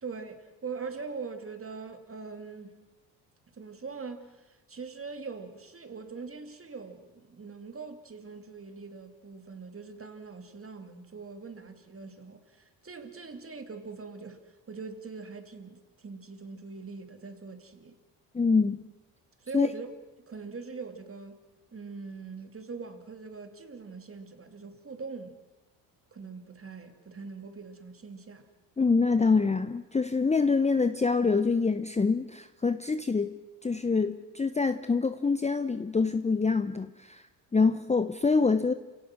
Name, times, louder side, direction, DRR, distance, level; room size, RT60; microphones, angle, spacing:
voice 1, 0.0-2.8 3.5-18.0 19.4-19.9 20.3-21.4 21.7-25.4 26.1-28.4, right 4 dB, 30° right, 2.7 m, -42 dB
voice 2, 18.3-18.8 19.5-19.7 28.8-37.2 37.5-38.7, left 4 dB, 15° left, 0.8 m, -25 dB
28.5 x 17.5 x 6.2 m
supercardioid pair, 70°, 46 cm